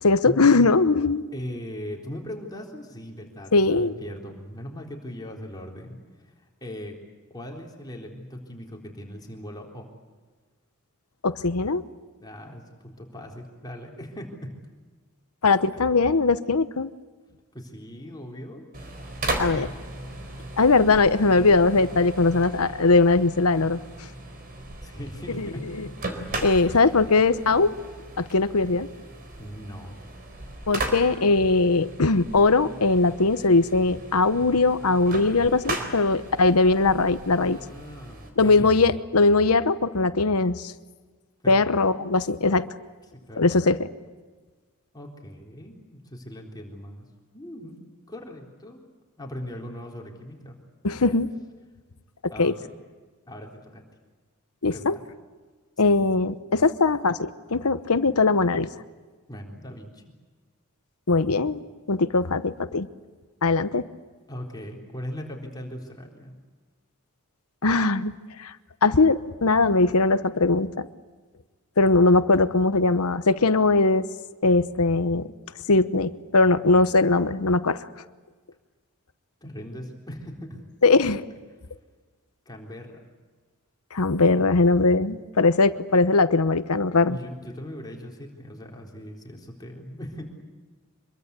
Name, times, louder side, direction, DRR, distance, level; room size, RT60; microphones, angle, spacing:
voice 1, 0.0-1.2 3.5-3.9 11.2-11.8 15.4-16.9 19.4-19.7 20.6-23.8 25.4-25.5 25.8-25.9 26.4-27.8 28.2-28.9 30.7-37.6 38.4-40.7 41.5-42.7 43.4-43.9 50.8-51.3 52.4-52.5 54.6-55.0 55.8-58.7 61.1-61.6 61.9-62.9 63.4-63.9 67.6-68.1 68.4-68.5 68.8-70.9 71.8-74.1 74.4-75.3 75.7-77.9 80.8-81.2 83.9-87.2, left 3 dB, 80° left, 12 dB, 1.0 m, -20 dB
voice 2, 1.3-6.0 6.2-7.0 7.3-9.9 12.2-14.5 17.5-18.6 19.5-19.7 24.8-25.6 29.4-30.0 37.4-38.8 41.4-41.6 43.3-43.4 44.9-47.1 47.3-47.8 48.1-48.8 49.2-50.6 50.9-51.2 52.3-52.8 53.3-53.8 54.7-55.0 55.9-56.0 59.3-60.0 64.3-66.3 79.4-80.6 82.5-83.1 87.1-90.3, equal, 20° left, 0 dB, 3.9 m, -39 dB
sound 1, 18.7-38.3, right 2 dB, 40° right, 4.1 m, -37 dB
26.0 x 22.5 x 8.3 m, 1.4 s
head